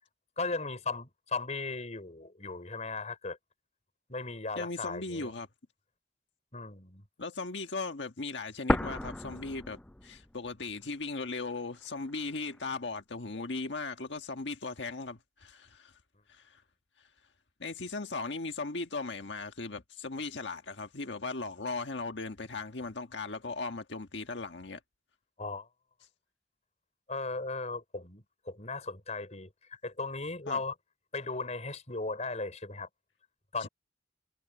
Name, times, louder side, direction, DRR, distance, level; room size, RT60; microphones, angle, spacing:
voice 1, 0.4-3.4 4.1-5.4 6.5-7.0 25.4-25.7 27.1-30.7 31.1-32.9 33.5-33.7, left 3 dB, 40° left, 5.0 m, -37 dB
voice 2, 4.5-5.5 7.2-15.9 16.3-16.6 17.6-24.8 30.5-30.6 33.6-33.7, left 3 dB, 75° left, 1.5 m, -38 dB
sound 1, 8.7-10.6 10.9-11.0 11.7-12.7, left 1 dB, 5° left, 0.3 m, -33 dB
open air
head